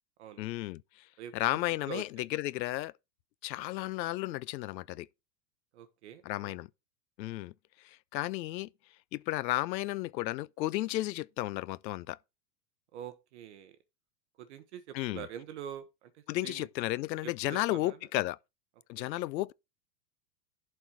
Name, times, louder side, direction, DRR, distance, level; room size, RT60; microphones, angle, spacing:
voice 1, 0.4-0.8 1.3-2.9 3.4-5.1 6.2-6.7 7.2-7.5 7.8-8.7 9.1-12.2 14.9-15.3 16.3-18.4 18.9-19.5, left 17 dB, 85° left, 0.6 m, -33 dB
voice 2, 5.7-6.6 12.9-13.8 14.4-16.7 17.2-18.0 19.0-19.1, right 10 dB, 45° right, 0.9 m, -45 dB
11.5 x 4.4 x 4.6 m
supercardioid pair, 175°, 50 cm